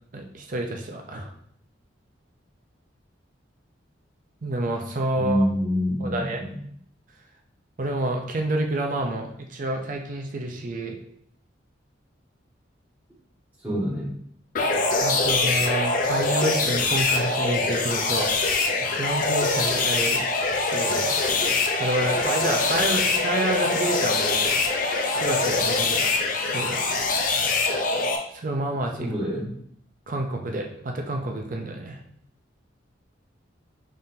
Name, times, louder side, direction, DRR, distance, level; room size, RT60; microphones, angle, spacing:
voice 1, 0.1-1.3 4.4-5.4 6.0-6.4 7.8-11.0 15.0-20.2 20.5-21.2 21.5-24.5 25.1-26.8 28.3-29.1 30.1-32.0, right 1 dB, 45° right, 2 dB, 0.5 m, -29 dB
voice 2, 5.2-6.5 13.6-14.1 29.0-29.5, equal, 10° right, -8 dB, 1.5 m, -26 dB
sound 1, 14.5-28.2, left 3 dB, 45° left, 0.5 m, -24 dB
4.0 x 3.7 x 2.7 m, 0.66 s
head